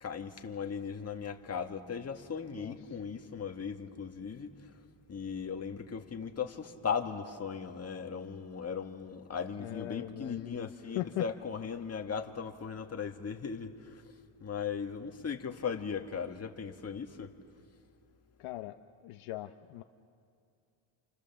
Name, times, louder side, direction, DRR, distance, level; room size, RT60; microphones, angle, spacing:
voice 1, 0.0-4.5 5.1-14.0 14.4-17.3, left 6 dB, 30° left, 4 dB, 1.8 m, -38 dB
voice 2, 9.6-10.7 10.9-11.2 18.4-18.8 19.0-19.8, left 16 dB, 90° left, 6 dB, 0.9 m, -39 dB
29.0 x 28.5 x 7.3 m, 2.5 s
cardioid pair, 115°, 50 cm